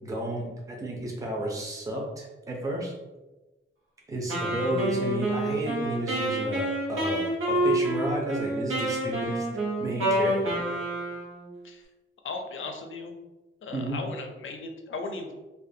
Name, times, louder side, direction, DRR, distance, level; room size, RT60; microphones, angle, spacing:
voice 1, 0.0-2.9 4.1-6.6 6.9-7.2 7.5-9.5 9.8-10.7 13.7-14.0, right 1 dB, 15° right, -2 dB, 0.5 m, -32 dB
Wind instrument woodwind instrument, 4.3-11.4, right 1 dB, 80° right, 0.7 m, -28 dB
voice 2, 12.2-13.1 13.6-15.3, left 3 dB, 70° left, 4 dB, 0.4 m, -36 dB
2.4 x 2.2 x 2.6 m, 1.1 s
wide cardioid pair, 140°, 21 cm